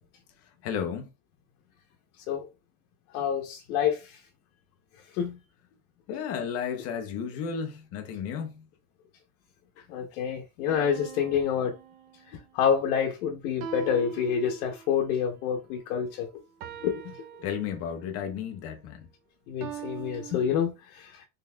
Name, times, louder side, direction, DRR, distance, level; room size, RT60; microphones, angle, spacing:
voice 1, 0.6-1.1 6.1-8.7 9.8-9.9 17.4-19.1, left 7 dB, 35° left, 0.7 m, -33 dB
voice 2, 3.1-4.2 5.1-5.4 9.9-11.7 12.3-16.3 16.8-17.1 19.5-21.3, left 8 dB, 80° left, 0.9 m, -28 dB
sound 1, 10.7-12.5 13.6-15.1 16.6-18.1 19.6-20.7, right 8 dB, 80° right, 0.7 m, -42 dB
3.8 x 3.6 x 2.2 m
cardioid pair, 175°, 42 cm